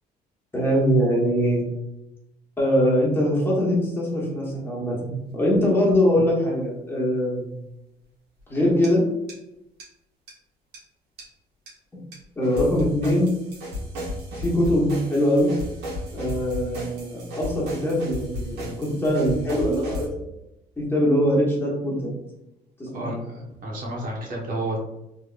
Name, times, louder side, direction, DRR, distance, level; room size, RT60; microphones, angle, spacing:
voice 1, 0.5-1.6 2.6-7.5 8.5-9.0 12.4-13.4 14.4-15.5 16.1-20.3 20.8-22.2 22.8-23.2, equal, 15° left, -5 dB, 1.2 m, -22 dB
sound 1, 5.5-5.6 5.9-6.0 8.8-8.9 9.3-9.4 9.8-9.9 10.3-10.4 10.7-10.8 11.2-11.3 11.7-11.8 12.1-12.2 12.4-20.1, left 1 dB, 75° right, 1.5 m, -34 dB
voice 2, 22.9-24.8, right 1 dB, 55° right, -3 dB, 1.3 m, -31 dB
3.7 x 3.3 x 2.4 m, 0.89 s
cardioid pair, 110°, 17 cm